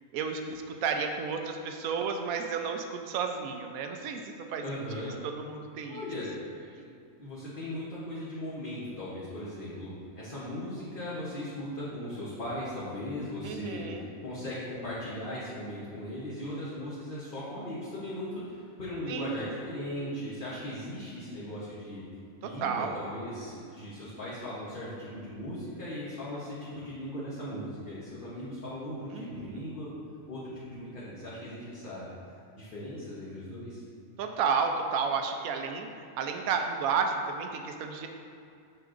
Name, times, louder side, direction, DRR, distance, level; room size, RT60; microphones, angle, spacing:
voice 1, 0.1-4.6 5.2-6.0 13.4-14.1 19.1-19.5 22.4-23.0 29.1-29.6 34.2-38.1, right 5 dB, 80° right, 4 dB, 1.0 m, -32 dB
voice 2, 4.6-5.2 5.9-6.3 7.2-22.0 22.4-30.0 30.3-32.1 32.5-33.8, left 1 dB, 40° left, -9 dB, 1.1 m, -38 dB
6.6 x 6.1 x 2.5 m, 2.4 s
omnidirectional pair, 1.5 m